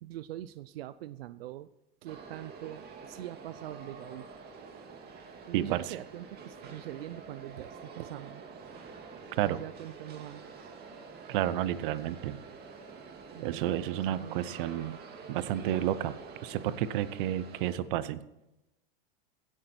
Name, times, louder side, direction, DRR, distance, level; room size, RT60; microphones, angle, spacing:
voice 1, 0.0-1.7 2.0-4.3 5.5-8.4 9.4-10.7 13.3-14.4, right 13 dB, 85° right, 15 dB, 0.6 m, -43 dB
sound 1, 2.1-17.8, right 4 dB, 35° right, 2.2 m, -47 dB
voice 2, 9.3-9.6 11.3-12.4 13.4-15.0 15.3-16.2 16.4-18.2, right 12 dB, 60° right, 16 dB, 0.9 m, -31 dB
16.0 x 11.0 x 4.4 m, 0.92 s
supercardioid pair, 130°, 29 cm